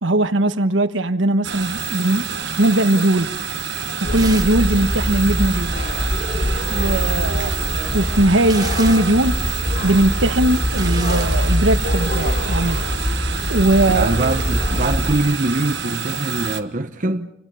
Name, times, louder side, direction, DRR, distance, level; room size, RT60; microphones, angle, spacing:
voice 1, 0.0-2.3 2.6-3.4 3.9-5.8 6.7-7.6 7.9-9.4 9.8-12.8 13.5-14.1, right 1 dB, 80° right, 1.3 m, -19 dB
sound 1, 1.4-16.6, right 7 dB, 60° right, 1.4 m, -28 dB
sound 2, 4.0-15.2, left 1 dB, 45° left, 3.3 m, -23 dB
sound 3, 4.1-4.7 4.9-5.0 7.4-9.2 10.1-11.3 12.1-12.4, right 5 dB, 20° right, 1.3 m, -34 dB
voice 2, 13.9-17.3, right 2 dB, 45° right, 0.9 m, -23 dB
29.5 x 26.0 x 5.6 m
head